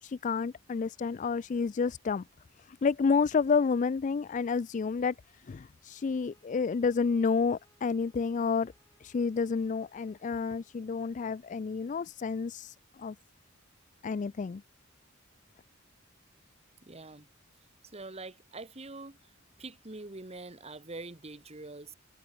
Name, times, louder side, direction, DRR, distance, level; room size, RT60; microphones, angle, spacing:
voice 1, 0.0-2.2 2.6-8.7 9.0-13.2 14.0-14.6, left 5 dB, 40° left, 0.3 m, -30 dB
sound 1, 5.8-10.8, left 2 dB, 15° left, 6.7 m, -70 dB
voice 2, 16.8-17.3 17.9-19.2 19.6-21.9, right 2 dB, 30° right, 1.5 m, -44 dB
head